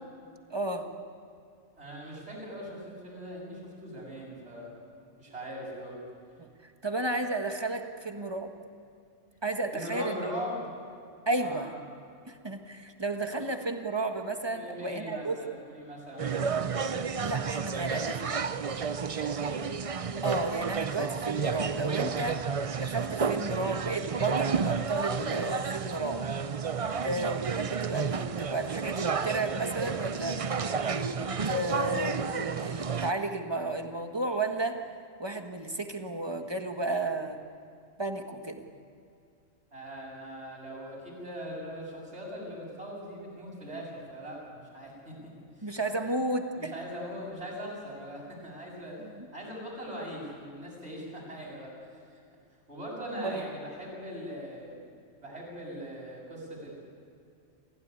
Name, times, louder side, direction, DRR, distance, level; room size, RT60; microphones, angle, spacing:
voice 1, 0.5-0.9 6.4-8.5 9.4-10.2 11.3-11.7 12.3-15.3 17.2-18.5 20.2-22.4 22.7-26.3 27.0-34.9 35.2-37.4 38.0-38.6 45.6-46.7 49.0-49.3 53.2-53.4, right 2 dB, 20° right, 5 dB, 1.6 m, -33 dB
voice 2, 1.8-4.7 5.2-6.0 9.7-10.7 11.4-11.7 14.5-16.6 19.0-19.6 26.8-27.1 39.7-45.3 45.6-45.7 46.0-49.0 49.3-52.0 52.7-54.8 55.2-56.7, equal, 65° right, -2 dB, 7.6 m, -41 dB
sound 1, 16.2-33.1, right 5 dB, 40° right, 0.6 m, -31 dB
27.5 x 16.0 x 9.8 m, 2.4 s
omnidirectional pair, 1.2 m